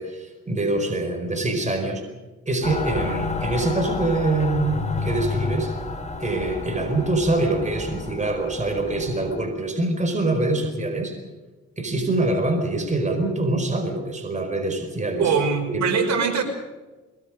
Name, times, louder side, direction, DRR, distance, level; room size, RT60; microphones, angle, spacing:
voice 1, 0.0-2.0 2.5-5.8 6.2-11.2 11.8-15.3 15.7-15.9, right 2 dB, 25° right, 4 dB, 5.0 m, -24 dB
Mechanical fan, 2.6-9.4, left 3 dB, 25° left, 4.2 m, -31 dB
voice 2, 15.2-16.4, right 5 dB, 65° right, 5 dB, 5.6 m, -22 dB
23.0 x 20.5 x 6.6 m, 1.2 s
cardioid pair, 90°, 30 cm